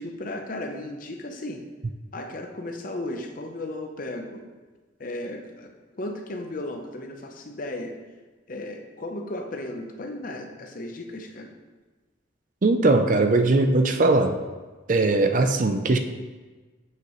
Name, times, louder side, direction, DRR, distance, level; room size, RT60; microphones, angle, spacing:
voice 1, 0.0-1.6 2.1-4.5 5.0-7.9 8.5-11.5, left 1 dB, 45° left, 4 dB, 0.7 m, -35 dB
voice 2, 12.6-14.3 14.9-16.0, right 2 dB, 45° right, 7 dB, 0.5 m, -20 dB
7.6 x 6.0 x 3.0 m, 1.3 s
head